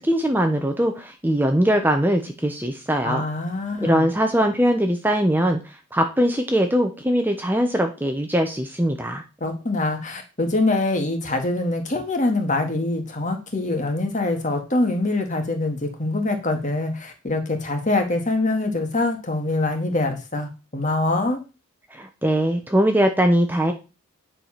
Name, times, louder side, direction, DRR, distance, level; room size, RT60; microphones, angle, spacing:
voice 1, 0.0-3.2 3.8-9.2 21.9-23.7, equal, 10° right, 4 dB, 0.9 m, -21 dB
voice 2, 3.0-4.1 9.4-21.4, left 2 dB, 35° left, 4 dB, 1.9 m, -24 dB
9.8 x 4.9 x 5.9 m, 0.30 s
head